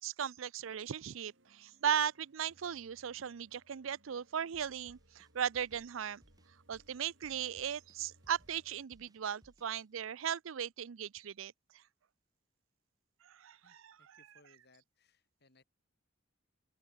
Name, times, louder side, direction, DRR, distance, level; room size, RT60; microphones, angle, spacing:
voice 1, 0.0-6.2 6.7-11.8 13.2-14.3, right 8 dB, 85° right, 0.5 m, -37 dB
sound 1, 0.6-8.9, right 1 dB, 65° right, 4.3 m, -68 dB
sound 2, 4.5-9.8, equal, 20° right, 6.7 m, -66 dB
voice 2, 13.6-15.6, left 2 dB, 55° left, 6.9 m, -67 dB
open air
head